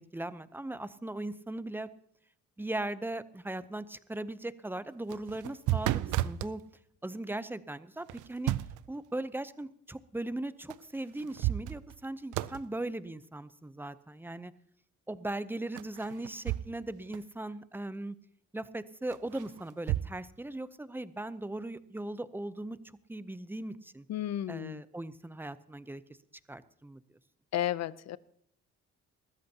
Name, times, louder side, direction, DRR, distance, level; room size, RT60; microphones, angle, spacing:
voice 1, 0.1-1.9 2.6-6.6 7.0-8.5 8.9-14.5 15.1-18.2 18.5-24.1 24.5-26.0 26.5-27.0, right 2 dB, 5° right, 15 dB, 0.6 m, -39 dB
sound 1, 5.0-6.5 8.1-8.9 10.7-10.8 11.2-12.0 12.3-12.7 15.8-16.9 17.1-17.2 19.1-20.1, right 15 dB, 85° right, 0.5 m, -33 dB
voice 2, 24.1-24.8 27.5-28.2, left 12 dB, 60° left, 18 dB, 0.6 m, -33 dB
21.0 x 14.0 x 2.8 m, 0.67 s
cardioid pair, 90°, 30 cm